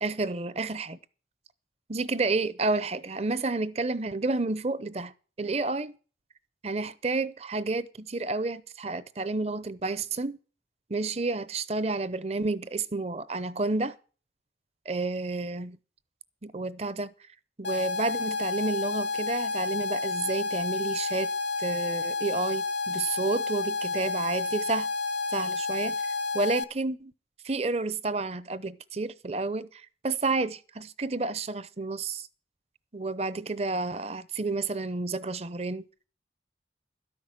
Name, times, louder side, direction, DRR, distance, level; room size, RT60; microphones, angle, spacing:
voice 1, 0.0-1.0 1.9-5.1 5.4-6.0 6.6-10.4 10.9-14.0 14.9-15.8 16.4-17.1 17.6-21.3 21.6-24.9 25.3-26.0 26.3-27.1 27.4-32.3 32.9-35.8, right 3 dB, 35° right, 0.6 m, -30 dB
sound 1, 17.6-26.6, left 3 dB, 85° left, 1.1 m, -30 dB
13.0 x 6.0 x 8.8 m
head